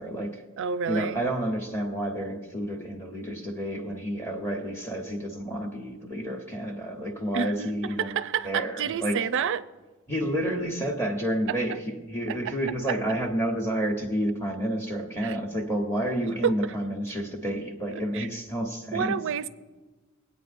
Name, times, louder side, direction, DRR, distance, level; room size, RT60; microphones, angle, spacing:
voice 1, 0.0-0.4 0.9-8.1 8.4-9.3 10.1-19.1, right 1 dB, 10° left, 1.0 m, -30 dB
voice 2, 0.6-1.2 7.3-9.7 11.5-11.6 12.3-12.5 12.9-13.0 15.2-15.4 16.2-16.5 17.9-18.3 18.9-19.5, right 7 dB, 60° right, 0.4 m, -29 dB
21.0 x 8.8 x 2.5 m
head